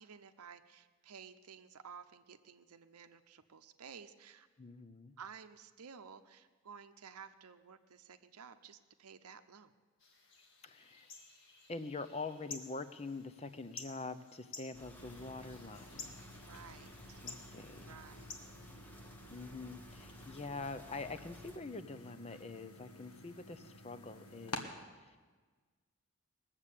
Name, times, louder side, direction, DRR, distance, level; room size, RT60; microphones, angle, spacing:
voice 1, 0.0-4.5 5.2-9.7 16.3-17.2 17.8-18.3, right 6 dB, 85° right, 9 dB, 0.7 m, -54 dB
voice 2, 4.6-5.1 10.6-11.1 11.7-16.2 17.2-17.9 19.3-24.7 25.0-25.2, left 3 dB, 30° left, 11 dB, 0.6 m, -45 dB
sound 1, 10.0-19.4, left 4 dB, 55° left, 1.5 m, -53 dB
sound 2, 14.7-21.6, equal, 10° left, 1.0 m, -56 dB
sound 3, 15.0-24.6, left 2 dB, 90° left, 1.4 m, -52 dB
20.0 x 7.4 x 8.3 m, 1.4 s
head